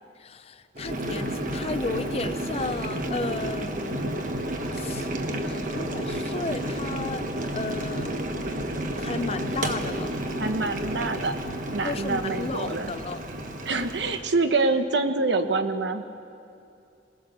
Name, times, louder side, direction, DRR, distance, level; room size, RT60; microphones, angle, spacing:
voice 1, 0.2-4.2 4.7-5.1 5.4-7.3 7.5-8.1 9.0-10.2 11.8-13.2, left 3 dB, 35° left, 12 dB, 0.5 m, -34 dB
Boiling, 0.7-14.2, right 1 dB, 45° right, 1.2 m, -31 dB
voice 2, 10.4-11.4 11.7-12.9 13.6-16.0, right 3 dB, 80° right, 8 dB, 1.1 m, -26 dB
21.0 x 18.5 x 6.7 m, 2.6 s
head